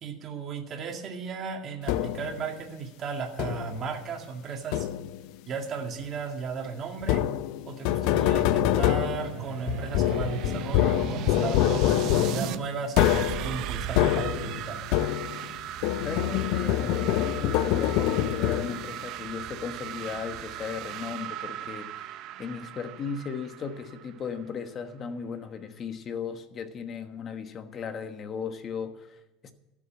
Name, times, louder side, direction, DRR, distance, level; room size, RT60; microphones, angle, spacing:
voice 1, 0.0-4.9 5.5-7.3 7.7-14.8, right 5 dB, 35° right, 3 dB, 2.0 m, -35 dB
sound 1, 1.9-2.4 3.4-3.9 4.7-5.3 7.0-15.5 15.8-19.0, left 12 dB, 65° left, 0.6 m, -26 dB
sound 2, 8.0-12.6 13.0-24.5, right 13 dB, 55° right, 0.6 m, -37 dB
voice 2, 16.0-29.5, left 6 dB, 30° left, 9 dB, 1.2 m, -36 dB
13.5 x 7.2 x 8.4 m, 1.1 s
supercardioid pair, 140°, 0 cm